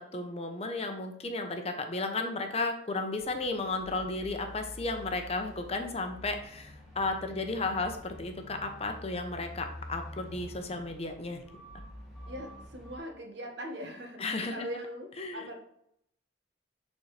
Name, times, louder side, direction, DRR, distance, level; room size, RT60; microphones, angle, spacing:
voice 1, 0.0-11.4 14.2-14.7 15.2-15.5, left 3 dB, 30° left, 5 dB, 0.8 m, -34 dB
sound 1, 3.2-13.0, left 1 dB, ahead, 2.2 m, -47 dB
voice 2, 12.3-15.5, equal, 65° right, 2 dB, 1.5 m, -41 dB
11.0 x 4.2 x 3.3 m, 0.73 s
head